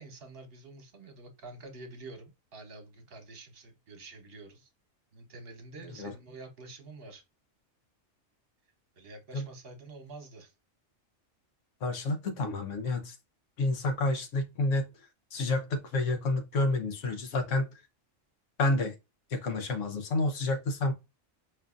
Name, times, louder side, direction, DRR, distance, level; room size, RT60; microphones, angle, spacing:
voice 1, 0.0-4.7 5.1-7.2 9.0-10.5, right 2 dB, 55° right, 1.1 m, -48 dB
voice 2, 11.8-13.1 13.6-14.9 15.3-17.7 18.6-18.9 19.3-20.9, left 2 dB, 90° left, 1.3 m, -29 dB
4.8 x 2.6 x 2.4 m
omnidirectional pair, 1.2 m